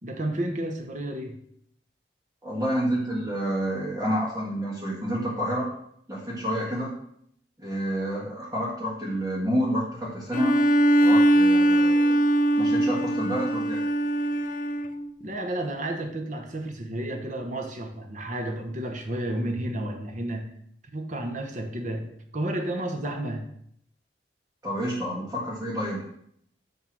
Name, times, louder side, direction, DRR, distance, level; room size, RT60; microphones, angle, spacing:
voice 1, 0.0-1.4 15.2-20.5 20.9-23.5, right 1 dB, 45° right, 4 dB, 1.1 m, -31 dB
voice 2, 2.4-5.7 6.1-6.9 7.6-10.6 11.0-12.2 12.6-13.8 24.6-26.1, equal, 15° right, -8 dB, 2.0 m, -29 dB
Bowed string instrument, 10.3-15.0, right 1 dB, 45° left, 0.5 m, -21 dB
9.2 x 3.6 x 6.2 m, 0.70 s
head